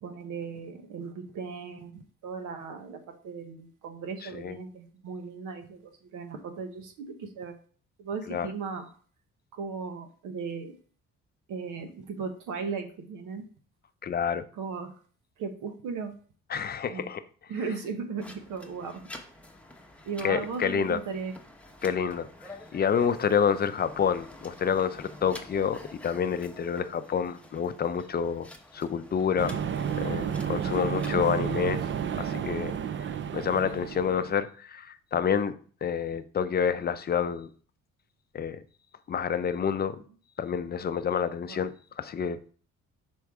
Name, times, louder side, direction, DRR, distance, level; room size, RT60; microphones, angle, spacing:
voice 1, 0.0-7.5 8.0-8.9 9.5-10.8 11.5-13.4 14.5-14.9 15.4-16.1 16.9-17.1 17.5-19.1 20.1-21.3 41.4-41.6, right 5 dB, 85° right, 1.0 m, -37 dB
voice 2, 14.0-14.4 16.5-17.2 20.2-21.0 21.8-28.5 28.7-29.6 30.0-31.8 32.2-32.7 33.3-35.5 35.8-37.5 38.3-38.6 39.1-40.0 40.4-42.4, left 7 dB, 30° left, 0.5 m, -28 dB
sound 1, 18.2-31.1, left 1 dB, 5° left, 0.9 m, -49 dB
sound 2, 29.4-34.3, right 8 dB, 40° right, 0.4 m, -31 dB
6.2 x 4.5 x 3.5 m
cardioid pair, 105°, 31 cm